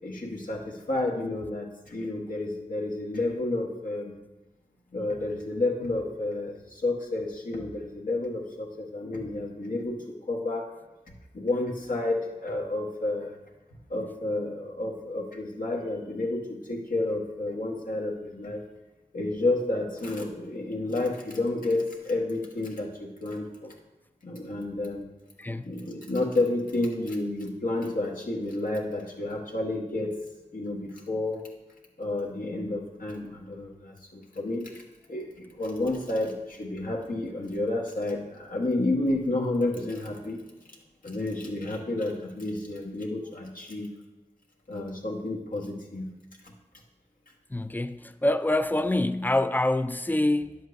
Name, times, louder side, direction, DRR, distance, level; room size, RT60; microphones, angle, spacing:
voice 1, 0.0-4.2 4.9-10.7 11.3-13.4 13.7-18.6 19.1-23.7 24.2-25.1 25.6-30.2 30.5-31.4 32.0-34.8 35.1-40.4 41.0-43.9 44.7-46.1 46.4-46.5, left 2 dB, 85° left, 1.3 m, -30 dB
voice 2, 25.4-25.9 47.5-50.6, left 1 dB, 15° left, 0.4 m, -26 dB
10.0 x 7.8 x 2.6 m
wide cardioid pair, 60°, 14 cm